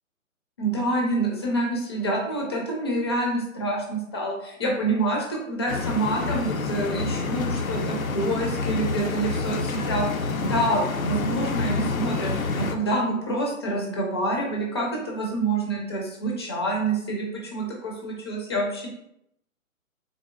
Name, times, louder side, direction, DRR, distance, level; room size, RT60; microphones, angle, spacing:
voice 1, 0.6-18.9, right 2 dB, 20° left, -1 dB, 0.5 m, -27 dB
sound 1, 5.7-12.7, left 4 dB, 75° left, 0.6 m, -28 dB
3.9 x 3.0 x 2.4 m, 0.78 s
figure-of-eight pair, 130°, 42 cm